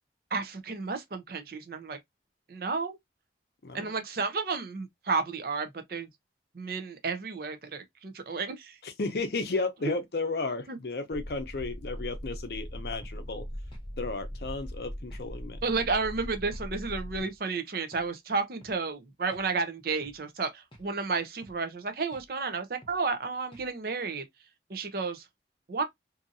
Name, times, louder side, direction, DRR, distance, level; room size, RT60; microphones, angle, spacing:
voice 1, 0.3-2.0 2.5-3.0 3.7-6.1 6.5-8.8 10.7-10.8 15.6-24.2 24.7-25.2 25.7-25.8, right 4 dB, 55° right, 0.6 m, -32 dB
voice 2, 3.6-3.9 8.8-13.4 14.0-15.6, left 3 dB, 60° left, 0.6 m, -33 dB
sound 1, 11.1-17.2, equal, 10° left, 0.4 m, -40 dB
sound 2, 13.0-13.2 13.7-13.9 14.4-14.6 15.1-15.3 15.8-16.0 16.5-16.7 17.2-17.4 17.9-18.1 18.6-18.8 19.3-19.5 20.0-20.2 20.7-20.9 21.4-21.6 22.1-22.3 22.8-23.0 23.5-23.7, equal, 30° left, 0.8 m, -54 dB
2.7 x 2.5 x 2.6 m
head